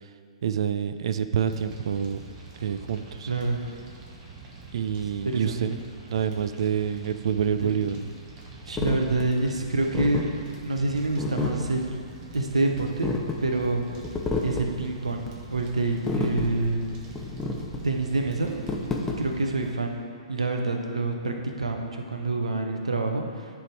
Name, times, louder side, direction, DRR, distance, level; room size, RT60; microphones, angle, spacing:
voice 1, 0.4-2.2 2.6-3.3 4.7-5.7 6.1-8.0, right 8 dB, 60° right, 11 dB, 0.3 m, -27 dB
Fire, 1.5-19.5, right 4 dB, 30° right, 1.1 m, -45 dB
voice 2, 3.3-3.6 5.2-5.8 8.7-10.3 10.6-12.0 12.3-13.9 14.4-16.9 17.8-18.5 19.2-23.2, right 2 dB, 80° right, 3 dB, 0.8 m, -27 dB
sound 1, 8.8-19.7, left 3 dB, 10° left, 0.7 m, -31 dB
10.0 x 3.5 x 4.7 m, 2.2 s
figure-of-eight pair, 120°, 3 cm